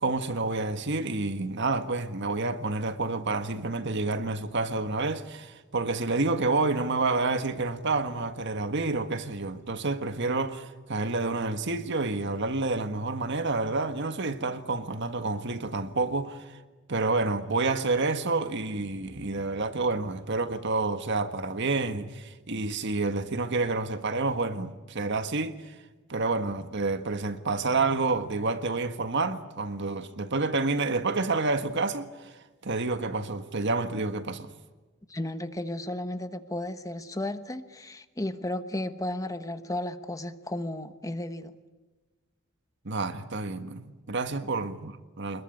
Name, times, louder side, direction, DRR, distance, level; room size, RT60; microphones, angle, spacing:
voice 1, 0.0-16.6 16.9-25.7 26.1-32.3 32.6-34.5 42.8-45.4, right 3 dB, 60° right, 1.7 m, -29 dB
voice 2, 35.1-41.5, left 1 dB, 15° left, 1.2 m, -34 dB
26.0 x 21.5 x 9.7 m
head